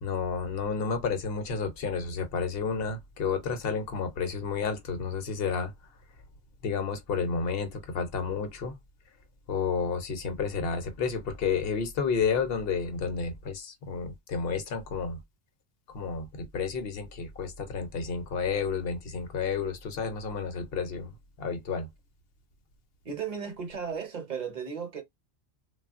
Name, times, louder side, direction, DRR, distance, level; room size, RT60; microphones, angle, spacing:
voice 1, 0.0-5.7 6.6-8.7 9.5-15.2 15.9-21.9, left 5 dB, 60° left, 0.9 m, -31 dB
voice 2, 23.0-25.0, right 6 dB, 45° right, 0.8 m, -35 dB
3.1 x 2.3 x 2.4 m
omnidirectional pair, 1.2 m